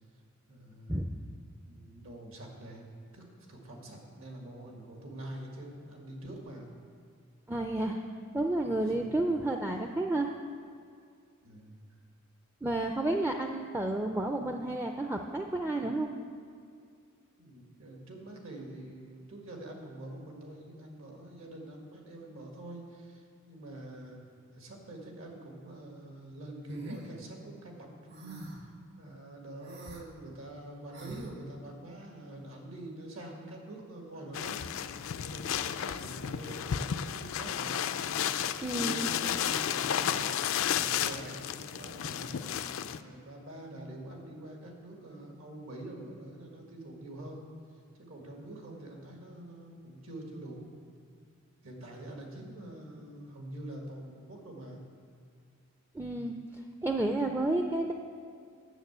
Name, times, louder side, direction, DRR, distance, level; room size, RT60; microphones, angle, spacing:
voice 1, 0.5-1.1 1.7-2.8 3.1-6.7 8.8-9.2 11.4-11.8 17.4-24.2 24.5-34.6 35.2-37.8 38.6-47.4 48.0-50.7 51.6-54.8, right 1 dB, 75° right, 0 dB, 1.9 m, -46 dB
voice 2, 7.5-8.0 8.3-10.4 12.6-16.1 38.6-39.1 55.9-56.4 56.8-57.9, right 2 dB, 10° right, 3 dB, 0.4 m, -31 dB
sound 1, 26.7-27.0 28.1-28.7 29.6-30.0 30.9-31.3, right 2 dB, 55° right, 1.4 m, -43 dB
sound 2, 34.3-43.0, left 9 dB, 70° left, 0.4 m, -32 dB
9.0 x 6.7 x 8.0 m, 2.3 s
head